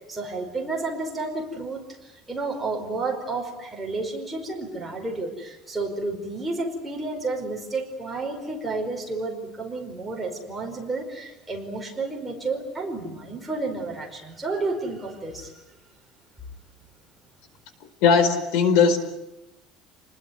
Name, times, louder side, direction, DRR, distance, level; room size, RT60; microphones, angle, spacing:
voice 1, 0.1-15.5, right 3 dB, 10° right, 0 dB, 5.1 m, -31 dB
voice 2, 18.0-19.0, left 6 dB, 70° left, 11 dB, 4.4 m, -18 dB
30.0 x 21.0 x 9.6 m, 0.97 s
cardioid pair, 165°, 0 cm